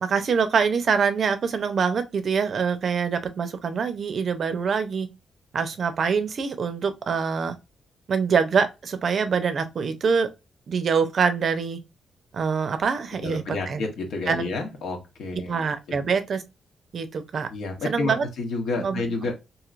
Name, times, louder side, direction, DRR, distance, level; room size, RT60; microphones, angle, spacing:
voice 1, 0.0-5.1 5.5-7.5 8.1-10.3 10.7-11.8 12.3-13.8 14.3-14.5 15.5-16.4 16.9-17.5 17.8-18.3 18.8-19.0, right 6 dB, 50° right, 0.5 m, -24 dB
voice 2, 13.2-15.6 17.5-19.3, left 3 dB, 80° left, 1.0 m, -30 dB
3.1 x 2.8 x 2.4 m
cardioid pair, 120°, 0 cm